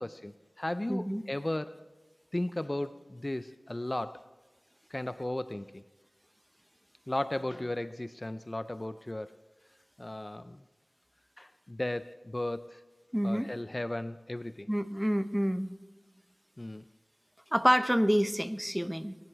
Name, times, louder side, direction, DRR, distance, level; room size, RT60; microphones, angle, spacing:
voice 1, 0.0-1.8 2.3-4.2 4.9-5.8 7.1-9.4 10.0-10.6 11.4-12.8 13.2-14.7 16.6-16.8, left 1 dB, 35° left, 13 dB, 0.4 m, -35 dB
voice 2, 0.9-1.2 13.1-13.5 14.7-15.7 17.5-19.2, equal, 5° right, 11 dB, 0.8 m, -27 dB
22.5 x 11.0 x 4.6 m, 1.2 s
wide cardioid pair, 50°, 0 cm